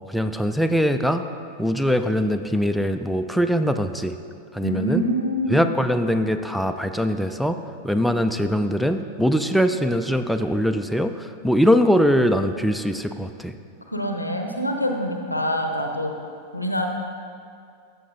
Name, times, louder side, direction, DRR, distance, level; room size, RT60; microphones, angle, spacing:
voice 1, 0.1-1.2 1.6-4.2 4.5-5.0 5.5-7.6 7.8-13.6, equal, ahead, 6 dB, 0.3 m, -22 dB
voice 2, 4.6-5.7 13.9-16.1 16.5-16.9, equal, 85° left, 4 dB, 0.7 m, -25 dB
13.5 x 6.7 x 2.6 m, 2.3 s
figure-of-eight pair, 90°, 0 cm